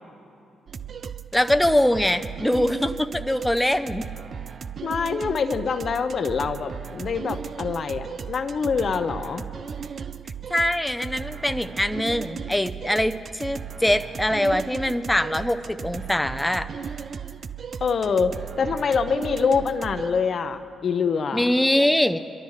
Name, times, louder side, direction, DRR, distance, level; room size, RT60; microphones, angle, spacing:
sound 1, 0.7-20.1, right 7 dB, 55° right, 0.4 m, -36 dB
voice 1, 1.3-4.0 10.5-16.7 21.3-22.2, left 1 dB, 10° left, 8 dB, 0.6 m, -23 dB
voice 2, 4.8-9.4 17.8-18.3 18.6-21.5, left 5 dB, 55° left, 10 dB, 0.7 m, -25 dB
24.0 x 12.5 x 3.2 m, 2.6 s
hypercardioid pair, 45°, 0 cm